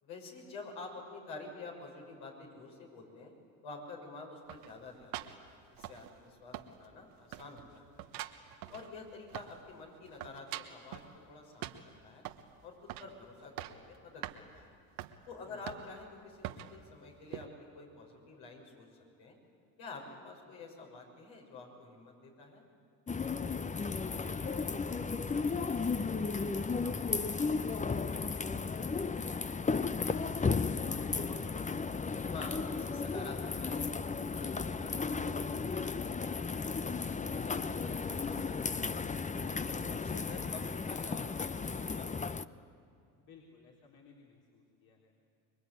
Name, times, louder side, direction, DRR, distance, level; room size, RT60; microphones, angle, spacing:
voice 1, 0.0-3.3 3.6-8.1 8.7-11.0 11.3-12.3 12.6-14.7 15.3-18.9 19.2-19.4 19.8-22.6 32.3-33.9 34.2-37.1 37.4-39.5 39.9-42.3, left 3 dB, 75° left, 0 dB, 6.8 m, -49 dB
sound 1, 4.5-6.3 6.5-7.0 7.3-9.7 10.0-11.1 11.6-12.5 12.9-13.1 13.4-13.9 14.2-14.4 15.0-15.2 15.7-16.1 16.4-16.7 17.3-17.5, right 14 dB, 90° right, 1.4 m, -44 dB
voice 2, 6.3-6.7 8.6-8.7 15.4-15.7 23.6-24.8 25.3-29.5 30.0-32.0 43.2-45.1, left 3 dB, 55° left, -1 dB, 3.9 m, -57 dB
sound 2, 23.1-42.4, left 4 dB, 15° left, 0.7 m, -34 dB
26.0 x 22.0 x 9.6 m, 2.6 s
supercardioid pair, 75°, 45 cm